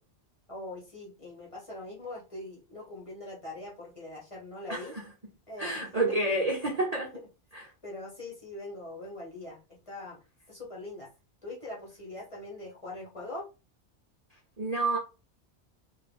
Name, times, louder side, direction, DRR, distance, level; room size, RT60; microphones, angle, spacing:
voice 1, 0.5-4.9 5.5-5.9 7.8-10.2 10.5-11.1 11.4-13.5, left 2 dB, 30° left, 1.3 m, -42 dB
voice 2, 5.6-7.1 7.5-7.6 14.6-15.0, right 2 dB, 40° right, 0.7 m, -29 dB
3.9 x 2.5 x 3.3 m
omnidirectional pair, 1.2 m